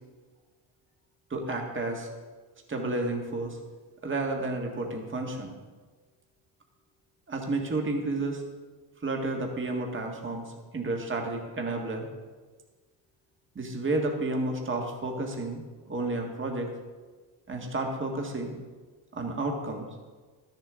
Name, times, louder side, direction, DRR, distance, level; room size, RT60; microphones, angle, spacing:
voice 1, 1.3-2.1 2.7-3.6 4.0-5.5 7.3-8.4 9.0-10.4 10.7-12.1 13.5-16.7 17.5-18.5 19.1-19.8, right 2 dB, 25° right, 1 dB, 1.7 m, -31 dB
13.0 x 10.5 x 3.7 m, 1.4 s
cardioid pair, 135°, 47 cm